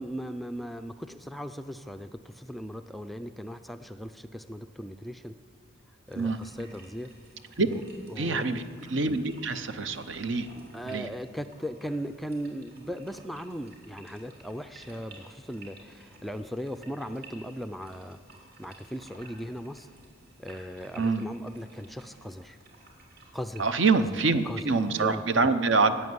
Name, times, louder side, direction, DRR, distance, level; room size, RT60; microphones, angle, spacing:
voice 1, 0.0-5.3 6.1-7.1 7.6-7.8 8.1-8.4 10.7-18.2 18.6-19.9 20.4-22.6 23.3-23.6 24.0-24.1 24.5-24.6 24.9-25.2, equal, ahead, 8 dB, 0.3 m, -38 dB
sound 1, 6.1-25.0, right 2 dB, 50° right, 3.2 m, -54 dB
voice 2, 8.2-8.6 8.9-10.5 10.9-11.1 21.0-21.3 23.6-25.9, right 4 dB, 65° right, 11 dB, 0.8 m, -25 dB
16.0 x 8.5 x 9.6 m, 2.1 s
head